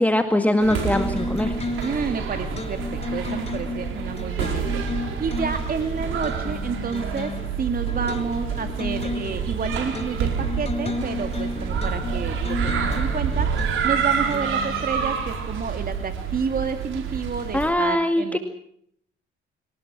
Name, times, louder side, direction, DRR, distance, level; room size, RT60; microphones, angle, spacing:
voice 1, 0.0-1.5 17.5-18.4, left 1 dB, 5° left, 6 dB, 2.0 m, -21 dB
sound 1, 0.6-17.7, right 6 dB, 80° right, 5.2 m, -28 dB
sound 2, 0.7-15.5, left 2 dB, 30° left, 3.0 m, -33 dB
voice 2, 1.8-4.9 5.2-18.4, right 5 dB, 45° right, 7 dB, 2.3 m, -30 dB
26.0 x 18.5 x 6.2 m, 0.65 s
cardioid pair, 90°, 20 cm